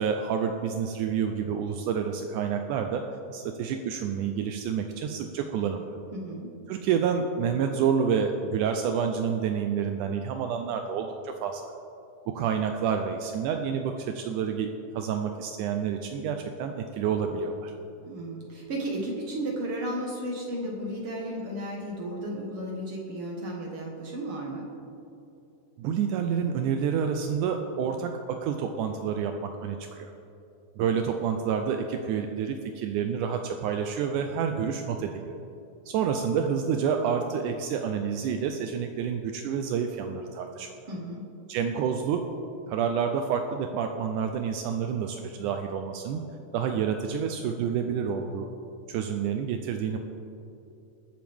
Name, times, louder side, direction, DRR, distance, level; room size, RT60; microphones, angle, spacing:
voice 1, 0.0-3.0 3.3-5.9 6.7-11.7 12.3-17.7 25.8-30.1 30.8-35.4 35.9-40.7 41.5-42.3 42.7-46.2 46.5-48.5 48.9-50.0, right 7 dB, 80° right, 5 dB, 2.0 m, -28 dB
voice 2, 6.1-6.5 18.1-24.7 40.9-41.2, right 1 dB, 50° right, -2 dB, 2.1 m, -34 dB
21.5 x 7.7 x 3.5 m, 2.7 s
omnidirectional pair, 3.7 m